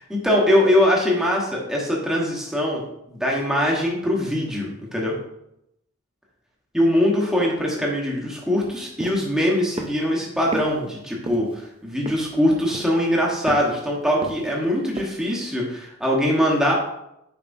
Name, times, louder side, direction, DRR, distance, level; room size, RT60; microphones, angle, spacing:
voice 1, 0.1-5.1 6.7-16.7, equal, 5° right, -3 dB, 1.1 m, -22 dB
sound 1, 9.0-9.2 9.8-10.0 10.5-10.7 11.3-11.5 12.1-12.4 12.7-13.1 13.5-13.7 14.2-14.6 15.0-15.1, right 2 dB, 25° right, 0.5 m, -32 dB
6.9 x 5.2 x 2.6 m, 0.82 s
head